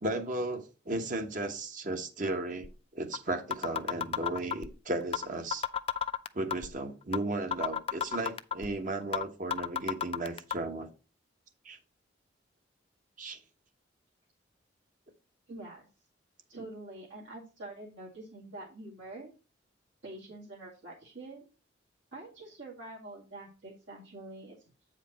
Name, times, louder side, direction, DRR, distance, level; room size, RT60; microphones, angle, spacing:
voice 1, 0.0-5.6 6.3-10.9 11.6-11.8 13.2-13.4, right 2 dB, 45° right, 1.1 m, -35 dB
sound 1, 2.6-2.7 3.1-3.2 3.5-4.7 5.1-5.3 5.5-6.7 7.1-7.2 7.5-8.7 9.1-9.2 9.5-10.5, left 8 dB, 30° left, 0.4 m, -31 dB
voice 2, 15.5-15.9 16.5-19.3 20.0-21.5 22.1-24.6, right 2 dB, 75° right, 2.3 m, -46 dB
8.4 x 5.0 x 4.2 m
head